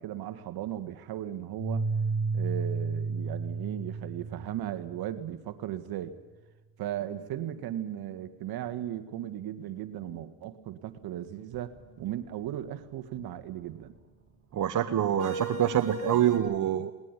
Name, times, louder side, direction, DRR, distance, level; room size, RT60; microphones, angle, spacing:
voice 1, 0.0-1.9 2.3-6.2 6.8-13.9, right 12 dB, 70° right, 10 dB, 1.9 m, -37 dB
sound 1, 1.6-4.9 7.0-13.7 15.1-16.4, right 3 dB, 35° right, 5.4 m, -35 dB
voice 2, 14.5-16.9, right 11 dB, 50° right, 10 dB, 1.1 m, -26 dB
20.0 x 19.5 x 9.9 m, 1.2 s
supercardioid pair, 85°, 39 cm